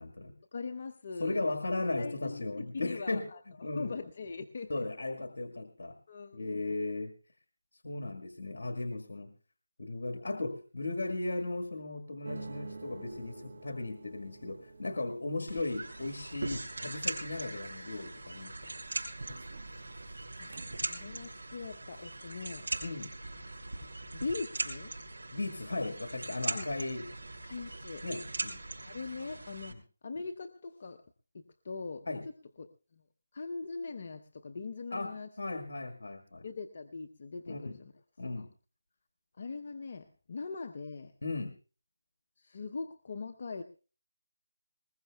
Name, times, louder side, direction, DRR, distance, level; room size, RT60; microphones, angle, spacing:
voice 1, 0.0-0.3 1.2-3.9 4.7-6.0 6.3-7.1 7.8-9.3 9.8-18.6 22.8-23.1 25.3-27.0 28.0-28.6 29.7-29.8 32.1-32.2 34.9-36.5 37.5-37.8 38.2-38.5 41.2-41.5, left 2 dB, 65° left, 5 dB, 1.7 m, -36 dB
voice 2, 0.5-1.4 2.0-2.4 2.7-3.4 3.8-4.8 6.1-6.6 20.4-20.5 20.9-22.7 24.1-24.9 26.5-26.7 27.4-28.0 28.8-29.8 30.0-31.0 31.3-32.1 32.6-32.7 33.3-35.3 36.4-37.9 38.4-38.5 39.4-41.1 42.4-43.6, left 4 dB, 45° left, 6 dB, 0.8 m, -41 dB
sound 1, 12.2-21.5 21.8-22.4, right 3 dB, 50° right, 1.6 m, -51 dB
sound 2, 15.5-29.7, right 2 dB, 75° right, 5.4 m, -40 dB
21.0 x 20.5 x 2.3 m, 0.37 s
figure-of-eight pair, 165°, 0 cm